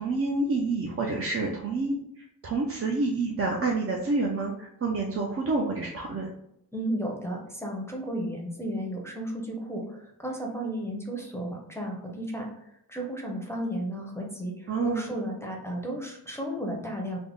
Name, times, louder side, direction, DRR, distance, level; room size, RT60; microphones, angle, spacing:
voice 1, 0.0-6.3 14.7-15.0, right 3 dB, 40° right, -1 dB, 0.4 m, -28 dB
voice 2, 6.7-12.5 12.9-17.2, right 1 dB, 5° left, -2 dB, 0.6 m, -33 dB
3.4 x 2.1 x 3.7 m, 0.79 s
wide cardioid pair, 115°, 38 cm